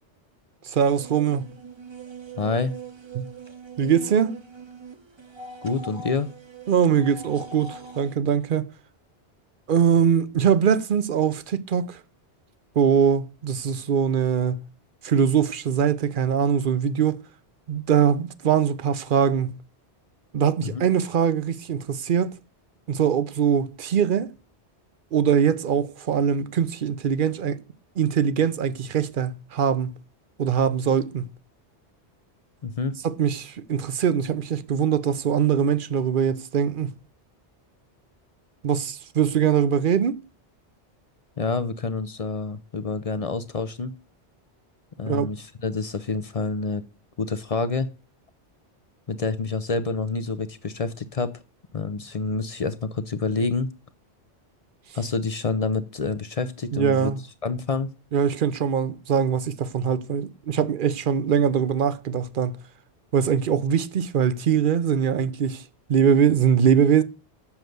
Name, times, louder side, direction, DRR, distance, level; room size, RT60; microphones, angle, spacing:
voice 1, 0.6-1.5 3.1-3.3 3.8-4.4 6.7-8.7 9.7-12.0 12.8-14.6 15.0-17.2 17.7-19.6 20.3-22.3 22.9-24.3 25.1-27.6 28.0-30.0 30.4-31.3 33.0-36.9 38.6-40.1 45.1-45.3 56.7-57.2 58.1-62.6 63.1-65.6 65.9-67.0, right 8 dB, 55° right, 0.8 m, -22 dB
sound 1, 1.0-8.1, right 4 dB, 25° right, 0.9 m, -42 dB
voice 2, 2.4-2.7 5.6-6.3 20.7-20.8 32.6-33.0 41.4-43.9 45.0-46.8 47.2-47.9 49.1-51.3 51.7-53.7 54.9-57.1 57.4-57.9, left 4 dB, 40° left, 0.5 m, -27 dB
7.2 x 6.5 x 7.8 m
omnidirectional pair, 1.2 m